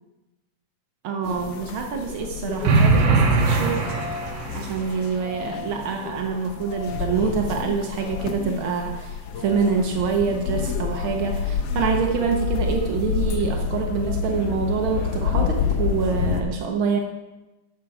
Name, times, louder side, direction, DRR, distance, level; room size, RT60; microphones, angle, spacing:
voice 1, 1.0-3.8 4.5-17.0, right 5 dB, 85° right, 3 dB, 1.1 m, -26 dB
sound 1, 1.2-16.4, left 6 dB, 70° left, 1.7 m, -29 dB
sound 2, 2.6-4.7, right 3 dB, 65° right, 2.3 m, -20 dB
12.0 x 7.3 x 4.8 m, 1.1 s
omnidirectional pair, 3.5 m